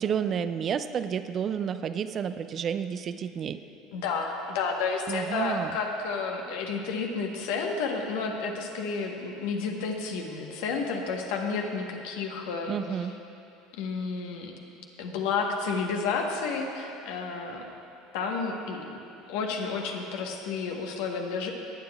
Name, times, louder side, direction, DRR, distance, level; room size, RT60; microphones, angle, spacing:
voice 1, 0.0-3.6 5.1-5.7 12.7-13.1, right 7 dB, 40° right, 11 dB, 0.4 m, -30 dB
voice 2, 3.9-13.1 13.7-14.5 15.0-17.6 18.1-19.0 19.3-21.5, left 4 dB, 65° left, 2 dB, 1.2 m, -31 dB
19.5 x 9.4 x 2.4 m, 2.8 s
figure-of-eight pair, 70°, 0 cm